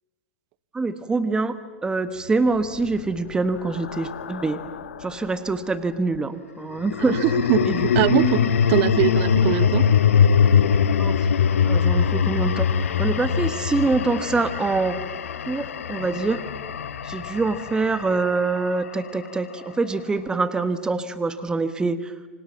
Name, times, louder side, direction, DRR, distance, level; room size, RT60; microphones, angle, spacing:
voice 1, 0.7-1.5 1.8-4.6 5.0-7.2 7.6-8.3 11.0-11.2 11.6-15.0 15.5-16.4 17.0-22.1, right 3 dB, 10° right, 1.2 m, -25 dB
sound 1, 2.6-5.1 6.7-19.0, left 7 dB, 80° left, 1.3 m, -22 dB
voice 2, 7.0-8.4 8.7-9.9, right 17 dB, 45° right, 0.8 m, -22 dB
29.0 x 25.5 x 7.4 m
hypercardioid pair, 120°, 7 cm